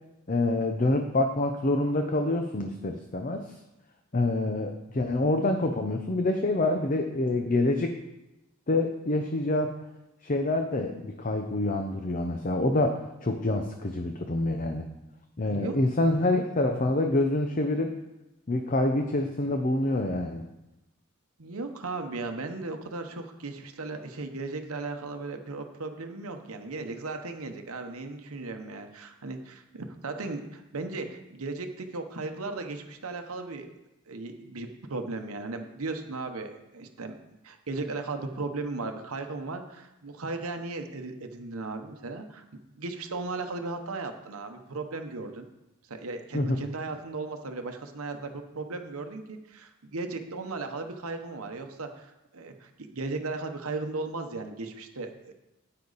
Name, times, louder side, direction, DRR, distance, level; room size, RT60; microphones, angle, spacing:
voice 1, 0.3-3.5 4.1-8.0 8.7-9.8 10.2-14.9 15.4-17.9 18.5-20.4 46.3-46.6, left 2 dB, 40° left, 5 dB, 0.7 m, -26 dB
voice 2, 15.4-15.7 21.4-33.7 34.1-37.2 37.4-45.5 45.9-55.3, right 3 dB, 70° right, 5 dB, 0.9 m, -36 dB
9.9 x 8.6 x 4.1 m, 0.94 s
head